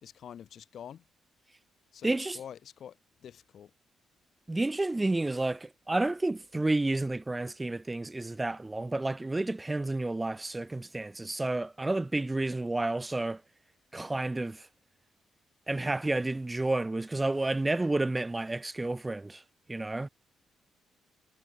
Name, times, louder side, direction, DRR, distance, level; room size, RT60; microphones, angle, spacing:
voice 1, 0.0-1.0 1.9-2.9 3.2-3.7, left 9 dB, 60° left, 4.4 m, -46 dB
voice 2, 2.0-2.4 4.5-13.4 13.9-14.7 15.7-19.4 19.7-20.1, right 2 dB, 15° right, 3.8 m, -30 dB
cardioid pair, 90°, 0 cm